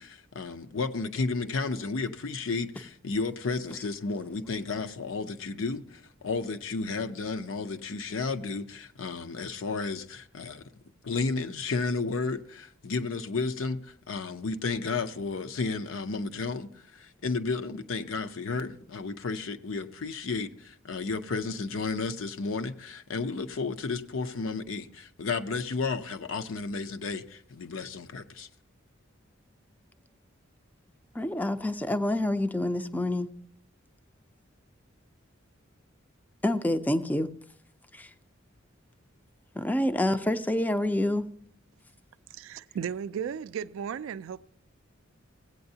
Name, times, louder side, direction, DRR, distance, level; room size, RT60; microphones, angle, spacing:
voice 1, 0.0-10.6 11.0-13.8 14.1-28.5, left 4 dB, 75° left, 0.6 m, -32 dB
voice 2, 31.1-33.3 36.4-37.3 37.9-38.1 39.5-41.3, left 1 dB, 10° left, 0.4 m, -27 dB
voice 3, 42.3-44.4, right 7 dB, 75° right, 0.3 m, -35 dB
16.0 x 8.7 x 2.7 m
head